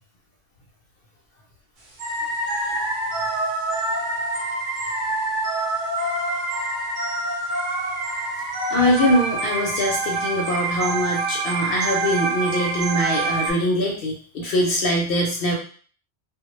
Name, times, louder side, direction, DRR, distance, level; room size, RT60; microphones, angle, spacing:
sound 1, 2.0-13.5, right 2 dB, 55° right, 0.7 m, -26 dB
voice 1, 8.7-15.5, equal, 65° left, -1 dB, 0.7 m, -22 dB
2.0 x 2.0 x 2.9 m, 0.43 s
omnidirectional pair, 1.1 m